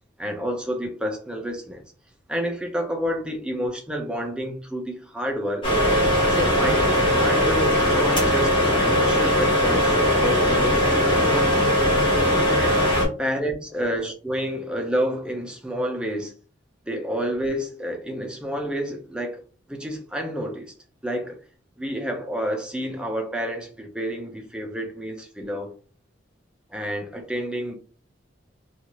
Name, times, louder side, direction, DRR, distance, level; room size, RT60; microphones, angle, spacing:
voice 1, 0.2-1.8 2.3-5.7 6.3-11.7 12.6-12.9 13.2-16.3 16.9-19.4 19.7-20.7 21.0-21.4 21.8-25.7 26.7-27.7, equal, 5° right, 0.5 m, -29 dB
sound 1, 5.6-13.1, equal, 25° left, 1.3 m, -20 dB
2.8 x 2.4 x 2.9 m
head